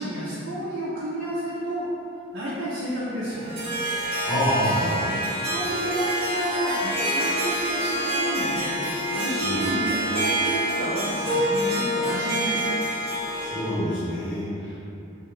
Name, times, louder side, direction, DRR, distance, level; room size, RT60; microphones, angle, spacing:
voice 1, 0.0-1.8 2.3-3.6 5.0-5.2 5.5-8.7 9.1-12.6, right 1 dB, 80° right, -9 dB, 0.5 m, -30 dB
Harp, 3.3-13.8, equal, 30° right, 0.7 m, -27 dB
voice 2, 4.3-5.0 9.4-9.7 13.2-14.8, equal, 65° left, -15 dB, 1.1 m, -27 dB
2.7 x 2.3 x 3.1 m, 2.8 s
head